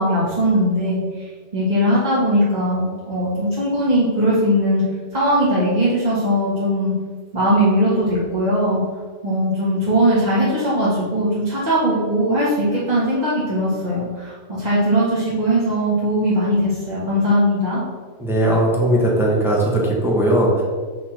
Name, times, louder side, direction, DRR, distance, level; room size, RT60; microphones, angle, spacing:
voice 1, 0.0-4.8 5.1-6.9 7.3-8.8 9.2-17.8, equal, 35° right, -9 dB, 1.8 m, -19 dB
voice 2, 18.2-20.6, right 1 dB, ahead, -4 dB, 1.3 m, -18 dB
5.7 x 4.3 x 6.0 m, 1.5 s
omnidirectional pair, 1.4 m